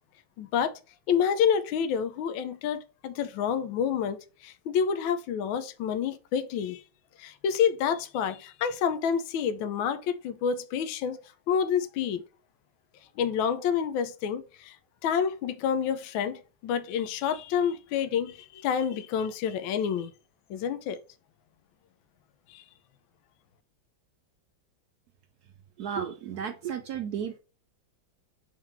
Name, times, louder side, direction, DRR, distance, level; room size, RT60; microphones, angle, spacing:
voice 1, 0.4-0.8 1.1-6.8 7.2-11.2 11.5-12.2 13.2-14.8 15.0-20.1 20.5-21.0 22.5-22.6, left 7 dB, 80° left, 1.4 m, -28 dB
voice 2, 25.8-27.4, right 8 dB, 75° right, 0.9 m, -33 dB
4.5 x 3.8 x 5.6 m
omnidirectional pair, 2.2 m